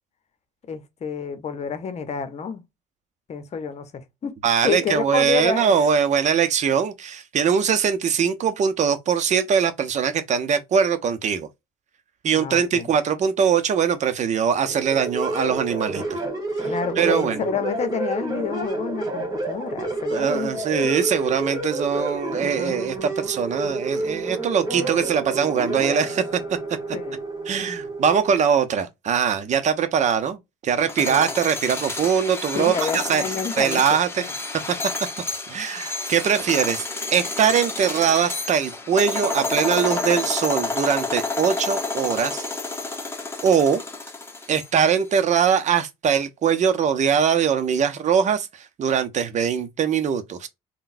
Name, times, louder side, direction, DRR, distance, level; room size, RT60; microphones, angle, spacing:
voice 1, 0.7-2.6 3.3-4.4 4.6-5.9 12.3-12.9 16.6-21.0 26.9-27.2 31.0-31.3 32.5-34.3, left 6 dB, 45° left, 0.9 m, -29 dB
voice 2, 4.4-11.5 12.2-16.2 17.0-17.4 20.1-26.2 27.5-33.2 33.6-34.2 35.5-42.5 43.4-43.8 44.5-50.5, right 7 dB, 50° right, 0.7 m, -22 dB
sound 1, 14.7-28.4, right 2 dB, 25° right, 1.6 m, -29 dB
sound 2, 30.8-44.9, left 3 dB, 15° left, 1.0 m, -29 dB
3.7 x 2.2 x 2.6 m
supercardioid pair, 75°, 16 cm